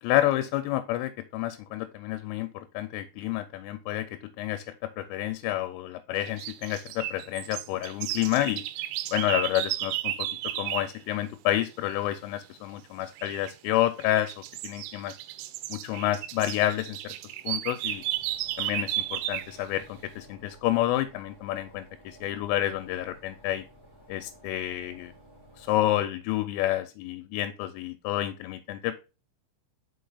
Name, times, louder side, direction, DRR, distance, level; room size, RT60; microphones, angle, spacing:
voice 1, 0.0-4.1 4.4-4.6 5.0-8.6 9.1-10.3 10.6-15.1 15.7-17.1 17.4-18.0 18.6-23.7 24.1-25.1 25.6-28.9, left 14 dB, 85° left, 8 dB, 3.2 m, -29 dB
sound 1, 6.2-10.9 13.2-13.5 14.0-19.6, right 14 dB, 85° right, 3.2 m, -33 dB
sound 2, 17.8-25.8, equal, 10° right, 1.7 m, -54 dB
6.1 x 5.4 x 3.9 m, 0.30 s
omnidirectional pair, 5.8 m